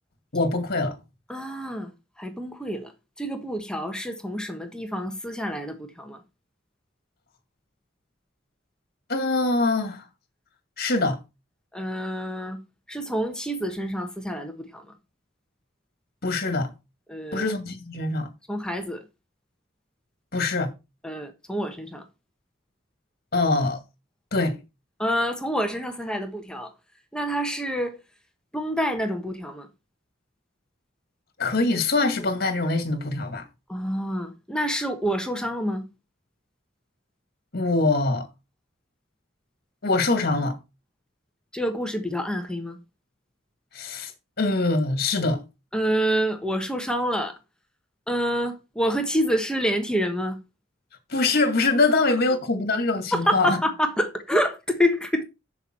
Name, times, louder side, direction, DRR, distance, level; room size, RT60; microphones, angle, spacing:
voice 1, 0.3-1.0 9.1-10.0 10.8-11.2 16.2-16.7 17.3-18.3 20.3-20.7 23.3-23.8 24.3-24.6 31.4-33.4 37.5-38.3 39.8-40.6 43.7-44.1 44.4-45.4 51.1-53.6, left 3 dB, 55° left, 2.1 m, -23 dB
voice 2, 1.3-1.9 2.2-2.9 3.2-6.2 11.7-12.6 12.9-14.9 17.1-17.5 18.5-19.0 21.0-22.0 25.0-26.7 27.1-28.0 28.5-29.7 33.7-35.8 41.5-42.8 45.7-47.4 48.1-50.4 53.1-55.2, equal, 5° left, 1.2 m, -27 dB
7.0 x 6.9 x 4.4 m
head